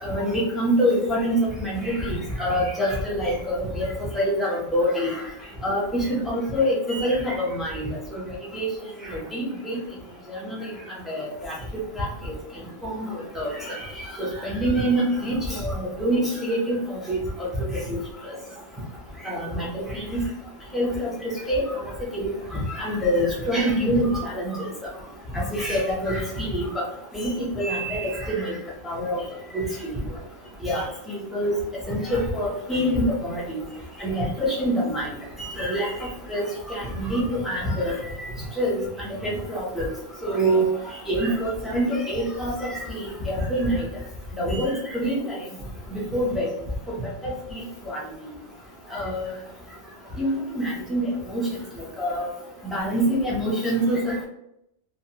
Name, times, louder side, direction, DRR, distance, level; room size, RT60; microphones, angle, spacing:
voice 1, 0.0-3.9 4.1-5.2 5.6-8.2 8.5-8.7 9.0-9.8 10.3-10.7 11.1-11.5 12.0-12.3 12.8-13.1 13.3-13.8 14.2-17.2 17.7-18.0 19.2-20.2 20.7-21.1 21.5-21.6 22.1-24.6 25.3-26.8 27.1-28.5 28.8-29.2 29.5-29.9 30.6-31.5 31.9-33.6 34.0-35.1 35.4-38.3 38.6-38.8 39.2-39.9 40.2-40.7 41.1-43.9 44.4-45.4 45.9-46.5 48.9-49.3 50.2-51.4 52.0-52.3 52.7-54.2, equal, ahead, -5 dB, 0.3 m, -25 dB
2.8 x 2.2 x 2.8 m, 0.79 s
omnidirectional pair, 1.4 m